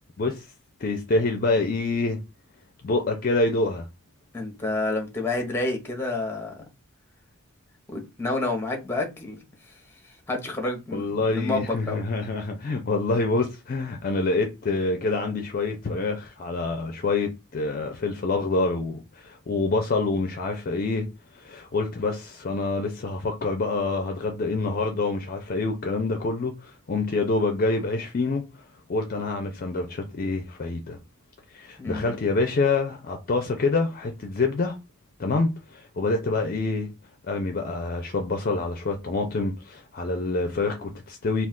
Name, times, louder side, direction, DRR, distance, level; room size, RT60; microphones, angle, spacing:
voice 1, 0.8-2.2 2.8-3.9 10.9-21.1 21.4-28.4 28.9-31.0 31.5-34.8 35.2-36.9 37.3-41.5, left 3 dB, 40° left, 0.4 m, -26 dB
voice 2, 4.3-6.6 7.9-9.4 10.3-12.1 31.8-32.2, left 2 dB, 10° left, 0.8 m, -29 dB
2.4 x 2.3 x 3.5 m
head